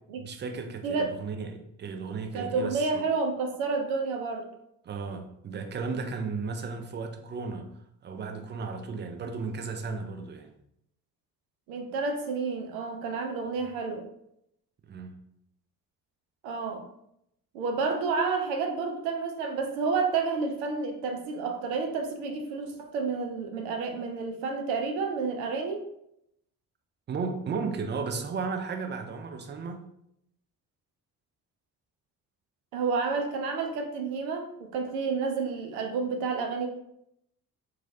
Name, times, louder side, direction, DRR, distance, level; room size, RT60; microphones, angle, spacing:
voice 1, 0.2-3.0 4.8-7.7 8.0-10.5 14.8-15.2 27.1-29.8, right 4 dB, 25° right, 0.4 m, -34 dB
voice 2, 2.3-4.5 11.7-14.1 16.4-16.8 17.5-25.9 32.7-36.7, right 4 dB, 70° right, 0.6 m, -30 dB
3.1 x 2.3 x 2.6 m
hypercardioid pair, 45°, 48 cm